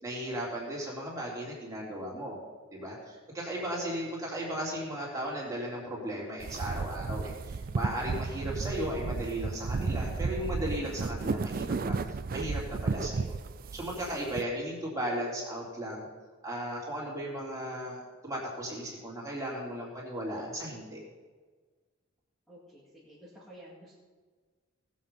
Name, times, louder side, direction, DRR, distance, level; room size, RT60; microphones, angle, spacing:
voice 1, 0.0-2.4 2.7-12.0 12.3-13.3 13.7-16.1 16.4-21.0, equal, 15° right, -4 dB, 3.5 m, -36 dB
sound 1, 6.4-14.4, right 4 dB, 40° right, 0.4 m, -33 dB
voice 2, 22.5-23.9, equal, ahead, -9 dB, 2.3 m, -52 dB
19.0 x 7.4 x 5.6 m, 1.4 s
head